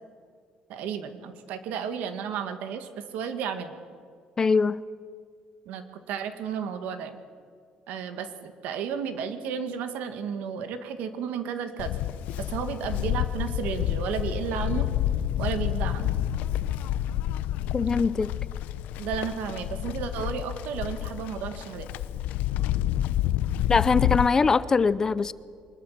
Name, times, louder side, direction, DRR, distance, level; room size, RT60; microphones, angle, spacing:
voice 1, 0.7-3.7 5.7-7.2 7.9-12.0 12.4-14.9 15.4-16.1 19.0-21.9, right 7 dB, 85° right, 9 dB, 2.1 m, -33 dB
voice 2, 4.4-4.8 17.7-18.3 23.7-25.3, left 4 dB, 20° left, 17 dB, 0.5 m, -22 dB
Livestock farm animals working animals, 11.8-24.3, left 12 dB, 85° left, 0.7 m, -29 dB
24.0 x 20.5 x 7.6 m, 2.1 s
cardioid pair, 160°, 3 cm